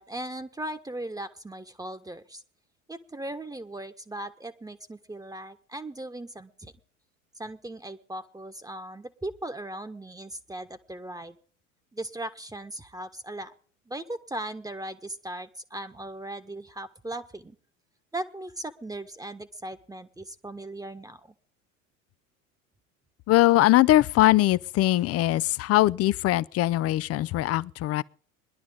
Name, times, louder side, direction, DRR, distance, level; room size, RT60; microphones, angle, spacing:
voice 1, 0.0-2.4 2.9-6.7 7.4-11.4 11.9-13.5 13.9-17.6 18.1-21.3, right 1 dB, 10° right, 1.4 m, -38 dB
voice 2, 23.3-28.0, left 16 dB, 35° left, 0.7 m, -21 dB
21.5 x 11.5 x 3.9 m
figure-of-eight pair, 75°, 41 cm